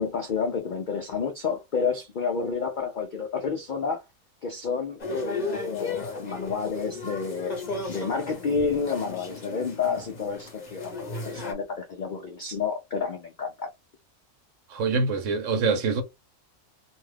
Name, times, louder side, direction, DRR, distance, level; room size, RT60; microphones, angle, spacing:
voice 1, 0.0-4.0 4.4-7.5 7.9-10.9 11.2-13.7, left 5 dB, 90° left, 0.4 m, -30 dB
sound 1, 5.0-11.5, left 3 dB, 35° left, 0.8 m, -35 dB
voice 2, 14.7-16.0, right 4 dB, 70° right, 1.0 m, -25 dB
2.6 x 2.3 x 3.2 m
omnidirectional pair, 1.5 m